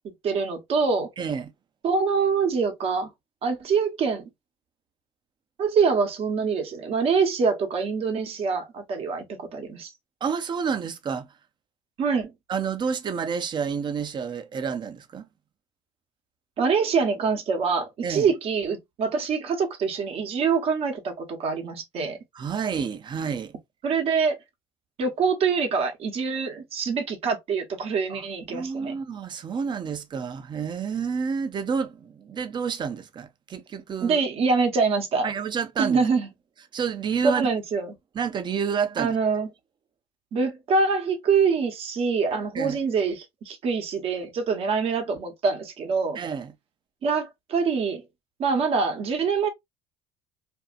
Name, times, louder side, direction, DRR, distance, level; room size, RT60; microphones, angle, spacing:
voice 1, 0.2-1.1 1.8-3.1 3.4-4.2 5.6-9.9 12.0-12.3 16.6-22.2 23.8-24.4 25.0-28.9 34.0-35.3 35.8-36.3 37.2-37.9 39.0-39.5 40.3-46.2 47.0-48.0 48.4-49.5, right 5 dB, 55° right, 1.0 m, -25 dB
voice 2, 1.2-1.5 10.2-11.3 12.5-15.3 18.0-18.3 22.3-23.5 28.1-28.2 28.5-34.2 35.2-36.0 36.7-37.5 38.1-39.2 42.5-42.8 46.1-46.5, right 6 dB, 40° right, 0.6 m, -29 dB
2.7 x 2.4 x 2.4 m
hypercardioid pair, 75°, 12 cm